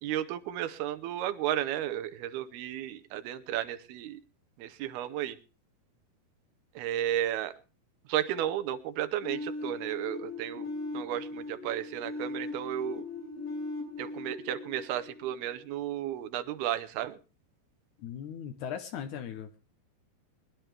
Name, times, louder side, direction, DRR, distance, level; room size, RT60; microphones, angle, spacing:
voice 1, 0.0-4.2 4.6-5.4 6.8-7.5 8.1-10.7 10.9-13.1 14.0-17.2, right 11 dB, 75° right, 11 dB, 2.6 m, -33 dB
sound 1, 9.2-16.0, left 2 dB, 55° left, 4.8 m, -39 dB
voice 2, 18.0-19.6, left 8 dB, 85° left, 7 dB, 1.7 m, -38 dB
22.0 x 10.5 x 3.4 m, 0.34 s
omnidirectional pair, 4.9 m